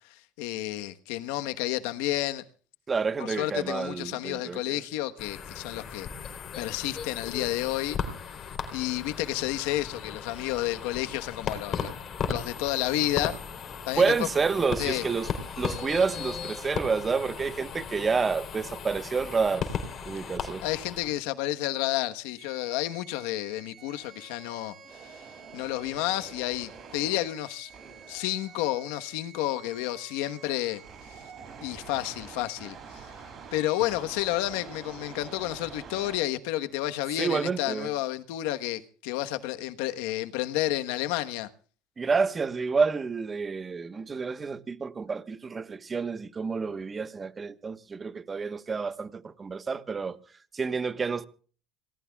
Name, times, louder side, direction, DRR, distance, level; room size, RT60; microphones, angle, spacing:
voice 1, 0.1-2.4 3.2-6.1 6.6-8.0 8.7-12.0 12.3-13.4 13.9-14.1 14.8-15.0 20.6-24.7 25.0-25.2 25.5-27.7 28.1-30.8 31.1-31.2 31.6-32.8 33.5-41.5, left 15 dB, 85° left, 1.2 m, -30 dB
voice 2, 2.9-4.8 14.0-15.3 15.6-19.6 20.0-20.6 37.2-37.9 42.0-50.2 50.5-51.2, right 5 dB, 25° right, 1.2 m, -29 dB
sound 1, 5.2-21.2, left 6 dB, 40° left, 3.6 m, -36 dB
sound 2, 22.4-36.2, right 6 dB, 40° right, 7.8 m, -47 dB
27.0 x 19.0 x 2.4 m
supercardioid pair, 120°, 0 cm